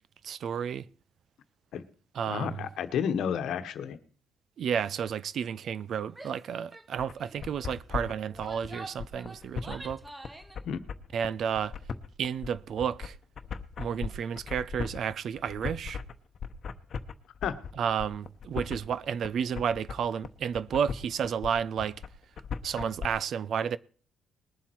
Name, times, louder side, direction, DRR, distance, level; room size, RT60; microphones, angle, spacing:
voice 1, 0.2-0.9 2.1-2.7 4.6-10.0 11.1-11.7 12.2-13.2 13.8-16.0 17.7-22.0 22.6-23.8, right 7 dB, 65° right, 0.5 m, -31 dB
voice 2, 2.3-4.0 10.6-10.8 17.4-17.5, left 8 dB, 75° left, 1.1 m, -31 dB
Female speech woman speaking / Yell, 6.1-6.4 6.7-6.9 7.2-7.5 8.2-10.6, right 2 dB, 15° right, 0.9 m, -46 dB
sound 1, 7.0-23.1, left 6 dB, 55° left, 0.9 m, -38 dB
20.5 x 7.5 x 4.5 m
cardioid pair, 90°, 0 cm